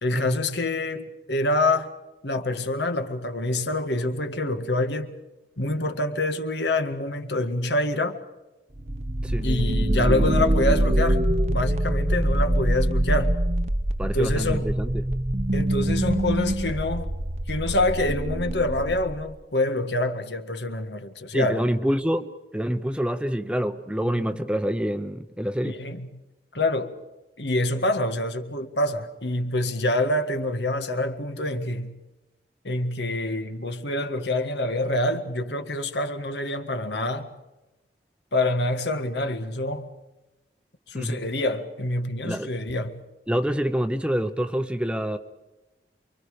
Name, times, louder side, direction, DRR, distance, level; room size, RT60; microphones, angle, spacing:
voice 1, 0.0-1.9 2.2-5.1 5.6-8.2 9.4-11.2 11.5-13.4 14.0-14.7 15.5-17.1 17.5-21.6 24.0-24.2 25.6-26.1 26.5-26.9 27.4-32.0 32.6-37.3 38.3-39.9 40.9-43.0, left 1 dB, 80° left, 1.9 m, -26 dB
sound 1, 8.7-19.4, right 1 dB, 40° right, 0.9 m, -24 dB
voice 2, 14.0-15.0 21.3-25.8 40.9-41.2 42.2-42.5 43.3-45.2, equal, 5° right, 0.8 m, -26 dB
28.5 x 23.5 x 5.1 m
head